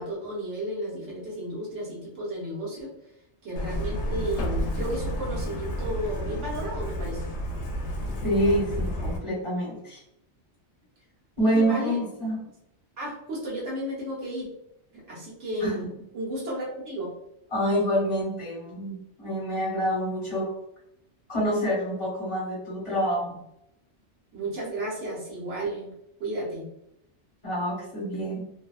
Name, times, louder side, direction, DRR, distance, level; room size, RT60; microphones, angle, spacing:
voice 1, 0.0-2.9 3.4-7.2 11.4-12.0 13.0-14.5 14.9-17.1 24.3-25.9 26.2-26.6, equal, 85° right, -5 dB, 1.2 m, -33 dB
Truck, 3.6-9.2, equal, 70° left, 0.8 m, -31 dB
voice 2, 8.2-10.0 11.4-12.4 15.6-15.7 17.5-20.5 21.3-23.4 27.4-28.4, equal, 30° left, -6 dB, 0.9 m, -27 dB
2.7 x 2.1 x 2.2 m, 0.79 s
omnidirectional pair, 1.2 m